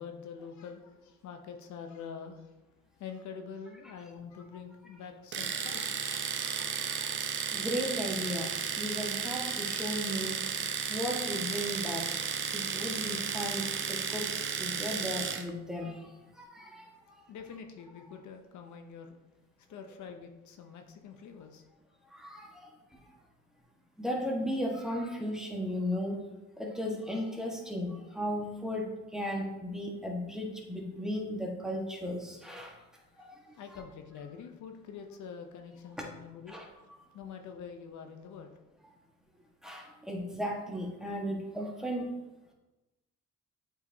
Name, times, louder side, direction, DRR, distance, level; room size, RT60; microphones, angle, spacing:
voice 1, 0.0-2.6 3.0-6.1 16.9-19.2 19.7-21.7 33.1-38.6, left 6 dB, 70° left, 5 dB, 0.7 m, -46 dB
Domestic sounds home sounds, 5.3-15.5, right 6 dB, 40° right, 0.6 m, -34 dB
voice 2, 6.6-7.1 7.5-8.5 8.8-10.4 10.9-12.0 12.5-14.3 14.6-16.0 16.5-16.8 22.1-22.5 24.0-26.2 26.6-32.7 36.5-36.7 39.6-42.1, equal, ahead, -1 dB, 1.3 m, -35 dB
8.0 x 4.8 x 2.7 m, 1.1 s
cardioid pair, 90°, 30 cm